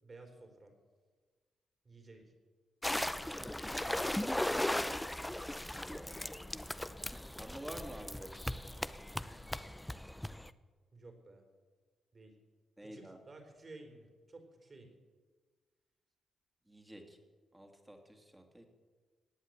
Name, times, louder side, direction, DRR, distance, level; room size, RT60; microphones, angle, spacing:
voice 1, 0.0-0.7 1.8-2.3 10.9-11.4 12.1-12.3 12.8-14.9, right 2 dB, 35° right, 4 dB, 4.2 m, -54 dB
sound 1, 2.8-10.5, left 1 dB, 5° left, 0.6 m, -37 dB
voice 2, 3.2-5.0 5.7-6.4 7.3-8.4 12.8-13.2 16.7-17.2 17.5-18.7, right 1 dB, 10° right, 4 dB, 2.7 m, -50 dB
18.0 x 8.2 x 9.0 m, 1.4 s
cardioid pair, 85°, 0 cm